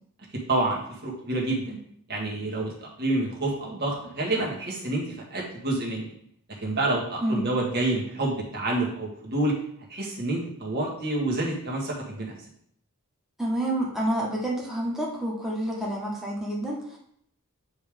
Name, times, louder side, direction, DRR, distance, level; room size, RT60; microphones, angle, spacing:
voice 1, 0.5-1.8 2.1-6.1 6.6-9.6 9.9-12.3, right 2 dB, 45° right, -3 dB, 1.8 m, -28 dB
voice 2, 13.4-17.0, right 1 dB, ahead, -4 dB, 1.4 m, -28 dB
9.3 x 3.4 x 3.6 m, 0.69 s
head